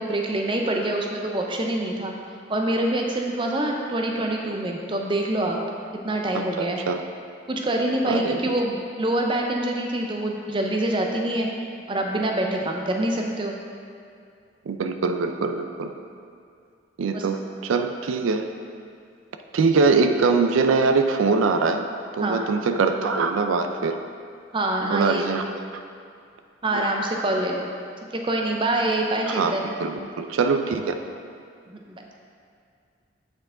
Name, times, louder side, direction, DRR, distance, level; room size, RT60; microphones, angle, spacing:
voice 1, 0.0-2.1 2.5-5.6 6.0-6.8 7.5-11.5 11.9-13.6 17.0-17.3 22.2-22.4 24.5-25.3 26.6-27.7 28.1-29.8 31.7-32.0, right 1 dB, 25° right, 1 dB, 0.5 m, -25 dB
voice 2, 6.3-7.0 8.1-8.5 14.7-15.9 17.0-18.4 19.5-21.9 22.2-24.0 24.9-25.4 26.7-26.9 29.3-30.9, right 4 dB, 85° right, 6 dB, 0.4 m, -23 dB
8.4 x 4.5 x 3.8 m, 2.4 s
head